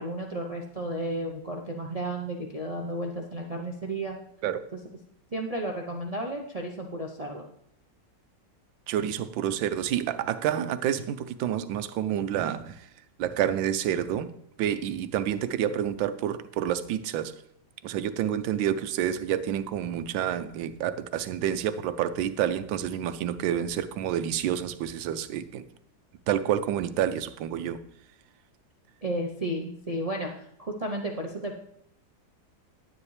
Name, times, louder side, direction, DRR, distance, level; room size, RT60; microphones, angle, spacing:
voice 1, 0.0-4.2 5.3-7.5 29.0-31.6, right 1 dB, 60° right, 1 dB, 0.3 m, -33 dB
voice 2, 8.9-12.9 13.2-14.3 14.6-17.3 17.8-25.6 26.3-27.8, right 10 dB, 85° right, 12 dB, 1.3 m, -28 dB
10.0 x 9.7 x 3.2 m, 0.73 s
omnidirectional pair, 2.1 m